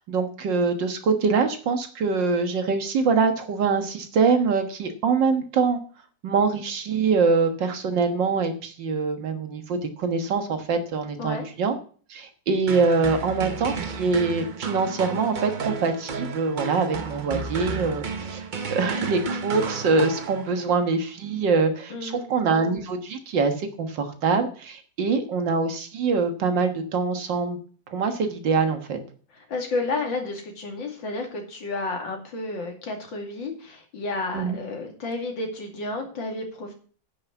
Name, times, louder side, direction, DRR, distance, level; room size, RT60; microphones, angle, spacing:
voice 1, 0.0-5.8 6.2-11.8 12.1-27.6 27.9-29.0 34.3-34.6, right 4 dB, 75° right, 7 dB, 2.1 m, -24 dB
sound 1, 12.7-20.8, right 4 dB, 50° right, 0.5 m, -32 dB
voice 2, 21.9-22.3 29.5-36.7, left 3 dB, 90° left, 2 dB, 3.1 m, -31 dB
9.7 x 6.4 x 7.1 m, 0.43 s
omnidirectional pair, 2.0 m